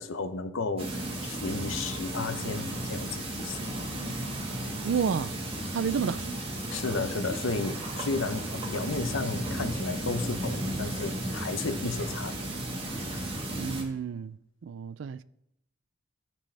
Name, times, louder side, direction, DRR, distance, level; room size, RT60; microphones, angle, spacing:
voice 1, 0.0-3.7 6.7-12.5, left 3 dB, 75° left, 0.7 m, -33 dB
sound 1, 0.8-13.8, right 1 dB, 25° right, 1.6 m, -34 dB
voice 2, 4.8-5.3 5.7-6.3 13.5-15.2, right 6 dB, 60° right, 0.3 m, -30 dB
14.0 x 6.2 x 3.3 m
head